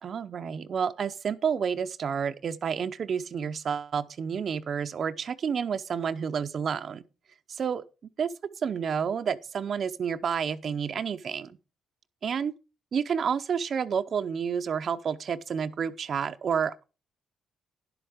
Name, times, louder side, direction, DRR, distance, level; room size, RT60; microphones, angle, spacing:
voice 1, 0.0-7.0 7.5-7.8 8.2-8.3 8.6-11.6 12.2-12.5 12.9-16.8, right 7 dB, 55° right, 0.6 m, -30 dB
10.5 x 7.8 x 5.0 m
cardioid pair, 90°, 0 cm